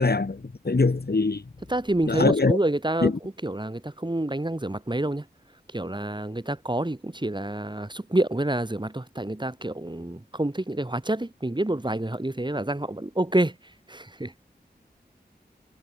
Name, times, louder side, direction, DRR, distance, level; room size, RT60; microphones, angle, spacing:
voice 1, 0.0-1.4 2.1-2.6 3.0-3.1, left 3 dB, 65° left, 4.1 m, -22 dB
voice 2, 1.7-5.2 5.7-13.5 13.9-14.3, right 1 dB, 25° right, 6.6 m, -28 dB
wide cardioid pair, 55°, 17 cm